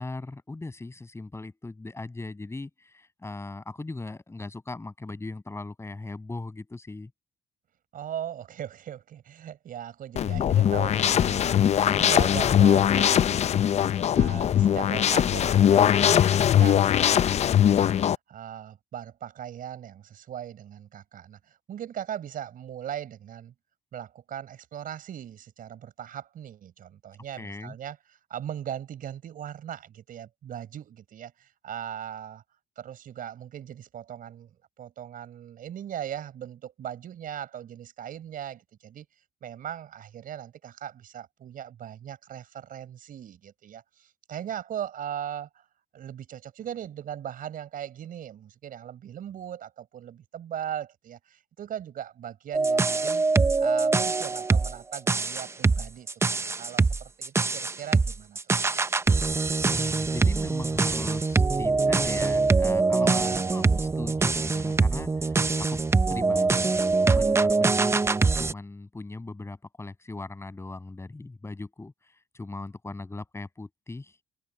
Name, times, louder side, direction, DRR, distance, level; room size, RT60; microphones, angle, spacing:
voice 1, 0.0-7.1 27.3-27.7 59.6-65.8 66.1-66.7 67.0-68.0 68.4-74.1, left 2 dB, 15° left, 6.8 m, -39 dB
voice 2, 7.9-11.6 11.9-13.8 14.1-23.5 23.9-32.4 32.8-39.1 39.4-45.6 45.9-53.2 53.6-58.4 63.0-63.7, right 10 dB, 55° right, 5.2 m, -39 dB
sound 1, 10.1-18.1, left 10 dB, 40° left, 0.5 m, -21 dB
sound 2, 52.5-68.5, right 3 dB, 15° right, 0.6 m, -23 dB
cardioid pair, 110°, 17 cm